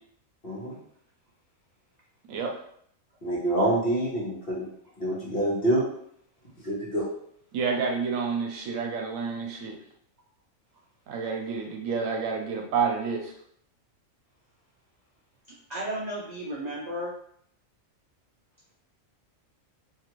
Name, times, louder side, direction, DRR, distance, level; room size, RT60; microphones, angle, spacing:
voice 1, 0.4-0.8 3.2-4.6 5.0-5.8 6.6-7.1, right 1 dB, 45° left, -6 dB, 1.2 m, -26 dB
voice 2, 7.5-9.7 11.1-13.2, right 5 dB, 75° right, 1 dB, 1.0 m, -29 dB
voice 3, 15.5-17.2, right 1 dB, 60° right, -4 dB, 0.4 m, -34 dB
2.8 x 2.4 x 3.0 m, 0.68 s
omnidirectional pair, 1.4 m